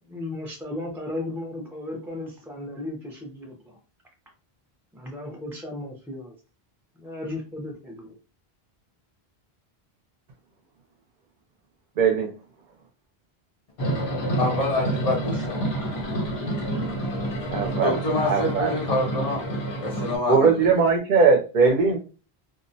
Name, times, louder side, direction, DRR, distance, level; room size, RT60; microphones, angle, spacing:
voice 1, 0.0-3.8 4.9-6.3 6.9-8.2, left 1 dB, 5° right, 0.3 m, -35 dB
voice 2, 12.0-12.3 17.5-18.7 20.3-22.0, right 5 dB, 55° right, 0.6 m, -20 dB
sound 1, 13.8-20.2, right 1 dB, 85° left, 1.1 m, -28 dB
voice 3, 14.3-15.7 17.8-19.4 19.8-20.7, left 2 dB, 45° left, 0.7 m, -27 dB
2.3 x 2.0 x 2.6 m
omnidirectional pair, 1.0 m